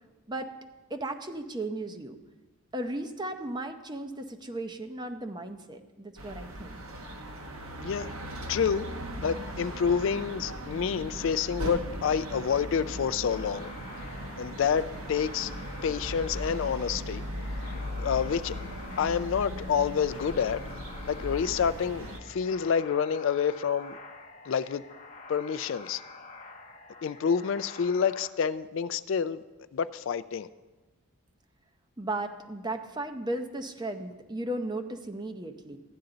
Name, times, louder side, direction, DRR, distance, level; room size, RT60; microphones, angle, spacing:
voice 1, 0.9-2.2 2.7-6.7 32.0-35.8, right 1 dB, 20° right, 6 dB, 0.6 m, -35 dB
sound 1, 6.2-22.2, equal, 75° right, 1.1 m, -38 dB
voice 2, 7.8-8.1 8.5-8.9 9.2-13.7 14.4-15.5 15.8-17.2 18.0-18.6 19.0-20.6 21.1-24.0 24.4-24.8 25.3-26.0 27.0-29.4 29.7-30.5, left 7 dB, 60° left, 13 dB, 0.3 m, -28 dB
sound 2, 13.3-28.3, left 3 dB, 35° left, 0.8 m, -48 dB
15.0 x 10.5 x 3.9 m, 1.2 s
head